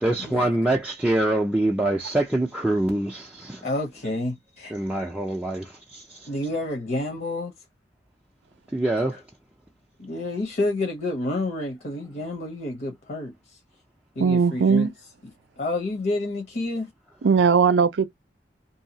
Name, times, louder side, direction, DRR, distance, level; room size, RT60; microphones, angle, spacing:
voice 1, 0.0-3.7 4.7-6.3 8.7-9.2, right 1 dB, 5° right, 0.4 m, -25 dB
voice 2, 3.6-4.7 6.3-7.5 10.0-13.6 14.1-14.9 15.6-16.9, left 2 dB, 55° left, 0.8 m, -29 dB
voice 3, 14.2-14.9 17.2-18.1, right 5 dB, 80° right, 0.5 m, -19 dB
2.7 x 2.3 x 2.7 m
head